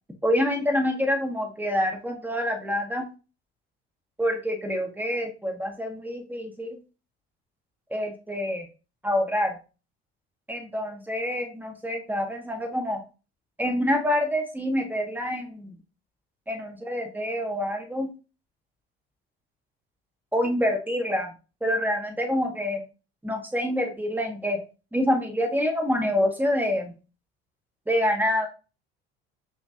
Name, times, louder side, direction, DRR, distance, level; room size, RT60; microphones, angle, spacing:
voice 1, 0.2-3.0 4.2-6.8 7.9-8.7 9.0-9.6 10.5-13.0 13.6-15.8 16.5-18.1 20.3-21.3 21.6-22.8 23.2-24.6 24.9-27.0 27.9-28.5, equal, 5° right, 3 dB, 1.6 m, -26 dB
5.8 x 2.9 x 2.8 m, 0.32 s
hypercardioid pair, 65°, 30 cm